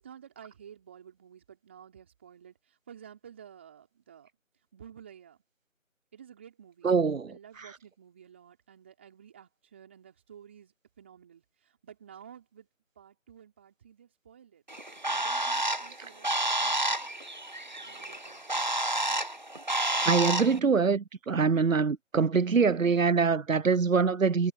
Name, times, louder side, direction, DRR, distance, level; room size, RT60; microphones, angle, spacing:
voice 1, 0.0-4.3 4.7-5.4 6.1-6.9 7.3-12.7 13.0-14.6 15.1-17.3 17.8-18.7, right 8 dB, 10° right, 3.7 m, -52 dB
voice 2, 6.8-7.3 20.0-24.5, right 5 dB, 85° right, 0.8 m, -24 dB
Bird, 14.7-20.6, right 1 dB, 35° right, 1.1 m, -30 dB
figure-of-eight pair, 170°, 39 cm